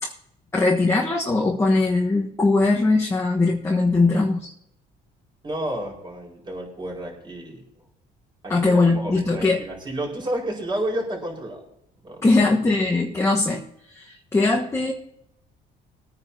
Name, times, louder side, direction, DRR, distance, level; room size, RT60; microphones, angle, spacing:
voice 1, 0.5-4.5 8.5-9.6 12.2-13.6 13.9-14.9, left 3 dB, 15° left, -1 dB, 1.3 m, -20 dB
voice 2, 5.4-7.6 8.4-11.6 12.0-12.3, right 1 dB, 30° right, -1 dB, 4.9 m, -31 dB
21.5 x 9.6 x 2.8 m, 0.76 s
cardioid pair, 110°, 17 cm